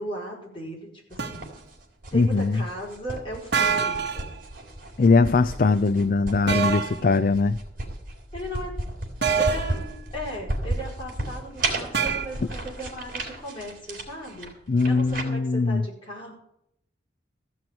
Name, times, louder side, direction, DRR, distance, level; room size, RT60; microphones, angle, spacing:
voice 1, 0.0-1.5 2.1-4.3 8.3-8.7 9.4-14.5 14.8-16.3, right 1 dB, 30° left, -3 dB, 5.4 m, -36 dB
sound 1, 1.1-15.2, right 2 dB, 50° right, 3.9 m, -34 dB
sound 2, 1.2-1.5 3.5-4.3 6.5-7.0 9.2-9.8 11.9-12.3, right 6 dB, 65° right, 1.5 m, -25 dB
voice 2, 2.1-2.6 5.0-7.6 14.7-15.8, left 3 dB, 45° left, 12 dB, 0.4 m, -21 dB
15.0 x 6.1 x 9.4 m, 0.75 s
head